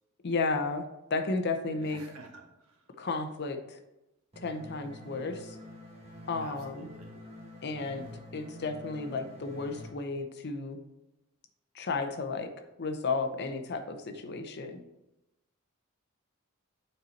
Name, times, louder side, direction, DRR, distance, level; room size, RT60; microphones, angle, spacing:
voice 1, 0.2-2.0 3.0-3.8 4.4-5.6 6.3-6.9 7.6-8.1 8.3-10.8 11.7-12.5 12.8-14.8, left 3 dB, 50° left, 7 dB, 0.6 m, -33 dB
voice 2, 1.7-2.8 6.4-7.1, right 2 dB, 85° right, 1 dB, 1.4 m, -50 dB
sound 1, 4.3-9.9, left 1 dB, 30° right, 1.2 m, -47 dB
6.7 x 4.2 x 4.1 m, 0.94 s
head